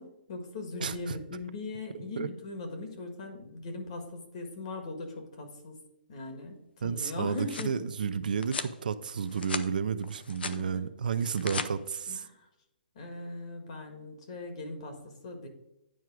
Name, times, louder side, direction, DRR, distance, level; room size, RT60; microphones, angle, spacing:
voice 1, 0.0-5.8 6.1-7.8 10.5-10.8 12.1-12.5 12.9-15.5, left 3 dB, 35° left, 4 dB, 1.5 m, -40 dB
voice 2, 0.8-1.2 2.2-2.3 6.8-12.2, right 6 dB, 60° right, 12 dB, 0.5 m, -32 dB
sound 1, 7.1-7.7 8.4-8.7 9.2-9.7 10.0-10.6 11.2-11.7, left 5 dB, 90° left, 0.7 m, -37 dB
9.3 x 4.7 x 4.7 m, 0.89 s
hypercardioid pair, 175°, 5 cm